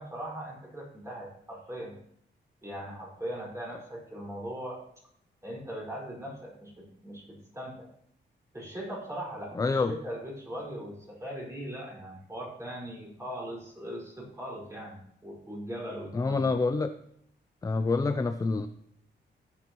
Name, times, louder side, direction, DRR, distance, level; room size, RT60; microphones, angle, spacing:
voice 1, 0.0-2.0 2.6-4.8 5.4-7.9 8.5-16.4, equal, 15° right, -5 dB, 5.3 m, -40 dB
voice 2, 9.5-9.9 16.1-16.9 17.6-18.7, left 3 dB, 20° left, 9 dB, 0.4 m, -27 dB
14.5 x 9.3 x 3.1 m, 0.68 s
wide cardioid pair, 120°, 19 cm